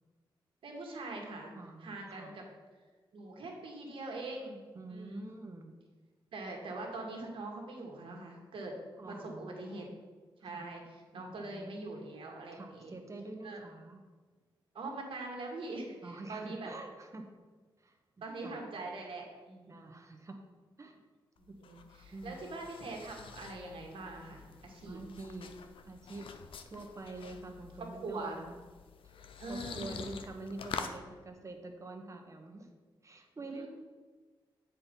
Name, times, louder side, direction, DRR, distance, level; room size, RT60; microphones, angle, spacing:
voice 1, 0.6-1.5 1.8-2.4 3.1-4.6 4.9-5.3 6.3-8.8 9.1-9.9 10.4-12.9 13.4-13.6 14.7-16.7 18.2-19.9 21.4-25.0 27.8-28.4 29.4-30.1 33.5-33.7, right 2 dB, 75° right, 0 dB, 1.7 m, -43 dB
voice 2, 1.5-2.3 4.7-5.7 9.0-10.0 10.4-10.7 11.1-11.8 12.5-14.0 16.0-17.2 17.8-18.6 19.7-20.4 20.8-21.0 21.5-21.6 22.1-22.4 24.8-25.5 25.8-26.3 26.6-28.6 29.5-32.7 33.0-33.7, right 2 dB, 35° right, 4 dB, 1.2 m, -46 dB
sound 1, 21.4-31.0, left 6 dB, 75° left, 0.5 m, -47 dB
7.8 x 4.6 x 5.3 m, 1.4 s
cardioid pair, 65°, 9 cm